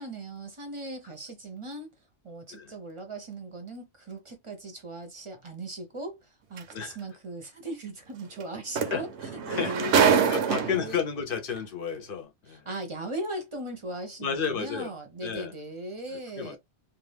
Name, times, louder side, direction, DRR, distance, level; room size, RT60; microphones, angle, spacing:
voice 1, 0.0-1.9 2.2-9.1 9.5-10.3 10.5-11.0 12.5-16.6, right 1 dB, 35° right, 0.6 m, -38 dB
sound 1, 6.6-6.7 8.4-8.5 8.8-11.0 11.9-12.0, right 7 dB, 80° right, 0.9 m, -24 dB
voice 2, 9.4-9.7 10.1-12.7 14.2-14.9 15.2-15.5 16.1-16.6, left 6 dB, 55° left, 0.8 m, -32 dB
2.5 x 2.4 x 3.3 m
omnidirectional pair, 1.2 m